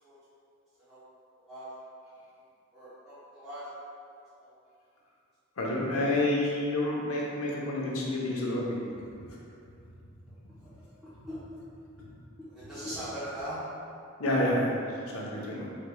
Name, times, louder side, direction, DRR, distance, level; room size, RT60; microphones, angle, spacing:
voice 1, 2.7-3.7 4.4-4.5 10.6-10.9 11.3-11.4 12.5-13.6, equal, 5° right, -15 dB, 0.9 m, -40 dB
voice 2, 5.6-8.8 12.0-12.1 14.2-14.8 15.1-15.7, left 1 dB, 75° left, -4 dB, 0.9 m, -29 dB
5.0 x 4.1 x 2.3 m, 2.6 s
head